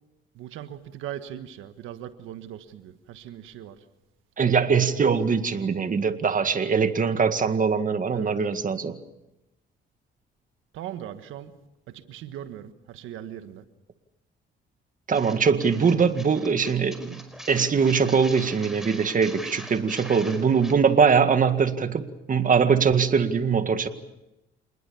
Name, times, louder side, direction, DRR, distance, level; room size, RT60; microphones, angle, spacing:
voice 1, 0.3-3.8 8.1-8.3 10.7-11.5 11.9-13.6, right 11 dB, 90° right, 10 dB, 1.5 m, -39 dB
voice 2, 4.4-9.0 15.1-23.9, right 6 dB, 40° right, 9 dB, 2.0 m, -22 dB
sound 1, 15.1-20.7, equal, ahead, 5.2 m, -43 dB
27.5 x 20.5 x 7.2 m, 0.94 s
cardioid pair, 90°, 20 cm